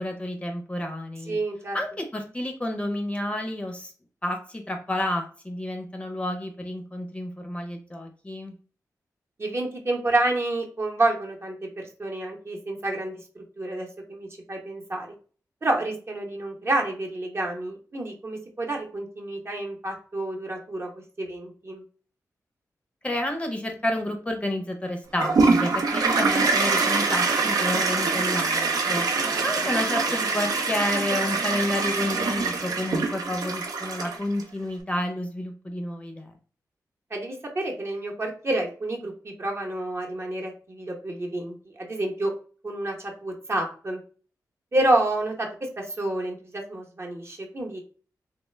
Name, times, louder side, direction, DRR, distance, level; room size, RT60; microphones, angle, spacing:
voice 1, 0.0-1.4 1.7-3.9 4.2-8.5 23.0-29.1 29.4-36.3, left 1 dB, 20° left, 3 dB, 0.6 m, -30 dB
voice 2, 1.3-1.8 9.4-13.2 13.6-15.1 15.6-20.9 21.2-21.8 29.1-29.4 37.1-42.3 42.6-44.0 44.7-47.8, right 2 dB, 40° right, 1 dB, 0.8 m, -29 dB
Toilet flush, 25.2-34.4, right 4 dB, 75° right, 0.5 m, -24 dB
3.1 x 2.2 x 3.1 m, 0.40 s
wide cardioid pair, 85°, 7 cm